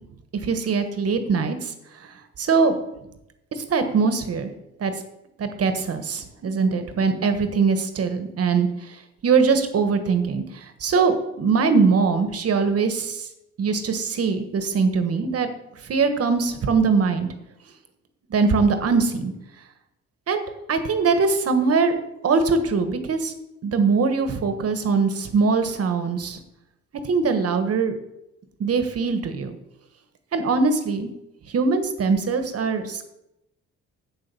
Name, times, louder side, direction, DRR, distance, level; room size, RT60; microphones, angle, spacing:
voice 1, 0.3-1.7 2.4-2.8 3.5-4.5 4.8-4.9 5.4-9.0 9.2-13.3 13.6-15.5 15.8-17.3 18.3-19.3 20.3-20.4 20.7-21.9 22.2-23.3 23.6-26.4 27.0-27.9 28.6-29.5 30.3-31.1 31.5-33.1, right 4 dB, 50° right, 8 dB, 1.3 m, -22 dB
7.8 x 7.2 x 5.4 m, 0.87 s
cardioid pair, 90°, 30 cm